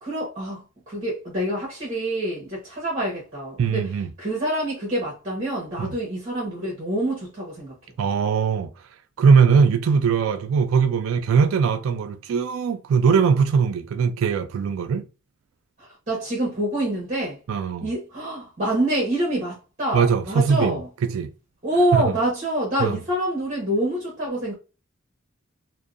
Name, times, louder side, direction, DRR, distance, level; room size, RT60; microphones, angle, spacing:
voice 1, 0.0-7.8 15.8-17.4 17.8-20.9 21.6-24.5, right 1 dB, 35° right, 1.0 m, -26 dB
voice 2, 3.6-4.1 5.8-6.0 8.0-8.7 9.2-15.0 17.5-17.9 19.9-20.8 21.1-21.3 21.9-22.0 22.8-23.0, right 6 dB, 90° right, 0.3 m, -20 dB
2.6 x 2.1 x 2.4 m
head